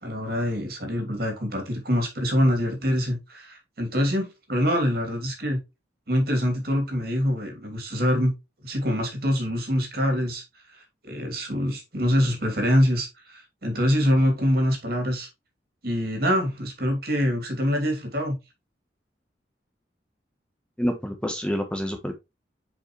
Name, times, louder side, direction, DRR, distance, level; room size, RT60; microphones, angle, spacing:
voice 1, 0.0-5.6 6.1-8.3 8.6-10.4 11.0-15.3 15.8-18.4, equal, 60° right, 2.6 m, -24 dB
voice 2, 20.8-22.1, equal, 5° left, 1.1 m, -27 dB
7.9 x 5.0 x 3.1 m
head